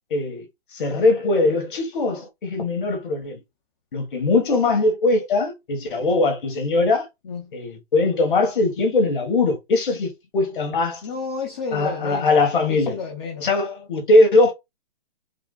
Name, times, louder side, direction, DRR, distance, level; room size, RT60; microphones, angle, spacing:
voice 1, 0.1-0.5 0.7-3.4 3.9-7.1 7.5-11.0 11.7-13.0 13.4-14.5, left 2 dB, 55° left, 1.9 m, -20 dB
voice 2, 11.0-12.3 12.7-13.5, left 4 dB, 25° left, 0.7 m, -31 dB
4.8 x 2.2 x 4.0 m
hypercardioid pair, 165°, 32 cm